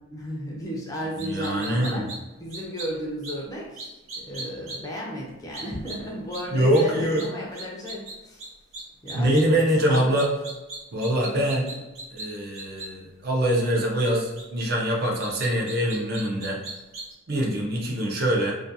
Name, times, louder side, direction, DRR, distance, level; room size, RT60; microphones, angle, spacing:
voice 1, 0.1-2.1 2.4-8.4 9.0-10.2 11.4-11.8, equal, 15° left, -3 dB, 0.4 m, -34 dB
voice 2, 1.2-2.1 6.5-7.3 9.1-10.3 10.9-11.7 12.1-16.6 17.3-18.5, right 1 dB, 50° right, -1 dB, 0.5 m, -24 dB
sound 1, 1.2-2.2 2.5-2.9 3.2-3.3 3.8-4.8 5.5-5.9 6.3-6.4 6.7-6.8 7.2-7.3 7.5-8.1 8.4-8.5 8.7-9.4 9.9-12.2 12.5-12.9 14.0-14.1 14.4-14.5 15.0-17.1, right 3 dB, 80° right, 0.7 m, -37 dB
2.3 x 2.2 x 2.6 m, 1.1 s
head